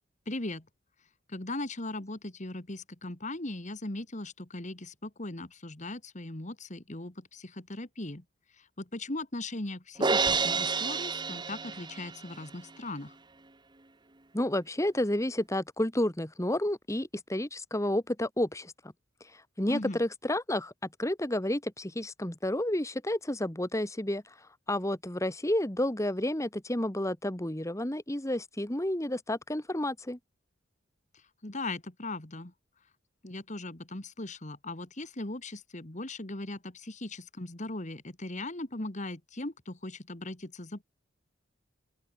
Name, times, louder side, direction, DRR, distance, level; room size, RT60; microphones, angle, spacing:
voice 1, 0.3-0.6 1.3-8.2 8.8-13.1 19.7-20.0 31.4-32.5 33.2-40.8, left 2 dB, 40° left, 2.0 m, -38 dB
Crash cymbal, 10.0-12.3, right 4 dB, 20° right, 1.0 m, -29 dB
voice 2, 14.3-18.7 19.6-20.7 21.0-24.2 24.7-30.2, left 1 dB, 15° left, 1.7 m, -30 dB
open air
head